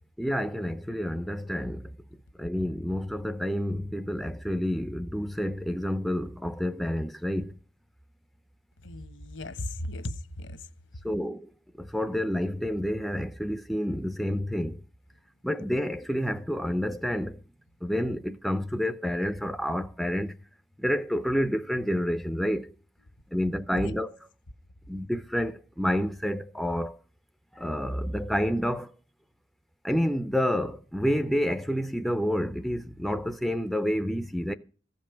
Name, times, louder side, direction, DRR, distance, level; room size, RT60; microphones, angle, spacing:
voice 1, 0.2-1.9 2.4-7.6 11.0-11.5 11.8-14.8 15.4-17.4 17.8-20.3 20.8-22.7 23.3-24.1 24.9-27.0 27.5-28.9 29.8-34.5, equal, ahead, 0.5 m, -29 dB
voice 2, 8.8-10.7 23.7-24.0, left 1 dB, 75° left, 1.2 m, -36 dB
15.0 x 5.3 x 8.7 m
head